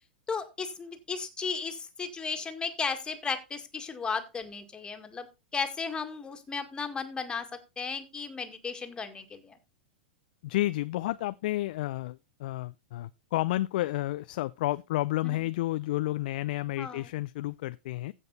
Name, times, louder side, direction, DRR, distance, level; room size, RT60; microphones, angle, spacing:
voice 1, 0.3-5.3 5.5-7.5 7.8-9.6 15.2-15.4 16.8-17.1, left 5 dB, 15° left, 2.0 m, -35 dB
voice 2, 10.4-18.1, left 16 dB, 60° left, 0.4 m, -31 dB
15.5 x 5.3 x 4.1 m
hypercardioid pair, 105°, 5 cm